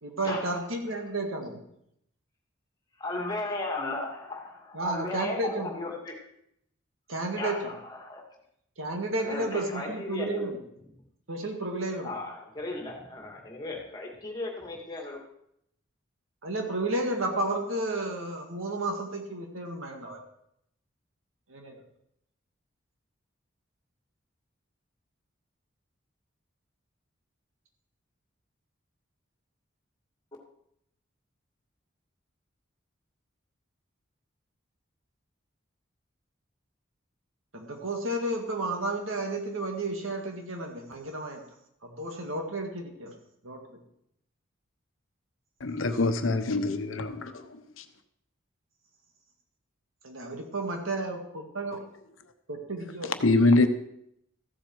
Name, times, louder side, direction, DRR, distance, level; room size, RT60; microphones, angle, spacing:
voice 1, 0.0-1.6 4.7-5.7 7.1-7.8 8.8-10.6 11.3-12.1 16.4-20.2 21.5-21.8 37.5-41.4 41.8-43.1 43.4-43.8 50.0-51.8 52.5-53.1, right 2 dB, 90° right, 2.0 m, -32 dB
voice 2, 3.0-6.2 7.3-8.2 9.2-10.5 12.0-15.2, left 2 dB, 20° left, 2.3 m, -35 dB
voice 3, 45.6-47.4 47.8-47.9 53.2-53.7, left 2 dB, 85° left, 0.9 m, -24 dB
14.5 x 7.5 x 4.8 m
head